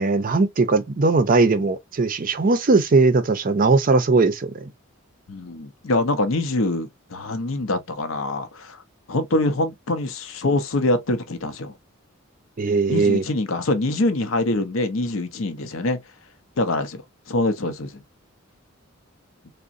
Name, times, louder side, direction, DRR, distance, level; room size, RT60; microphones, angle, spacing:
voice 1, 0.0-4.7 12.6-13.2, right 3 dB, 40° right, 0.5 m, -19 dB
voice 2, 5.3-8.8 9.1-11.7 12.9-16.0 16.6-17.0 17.3-18.0, left 2 dB, 70° left, 0.6 m, -24 dB
3.7 x 2.1 x 2.5 m
head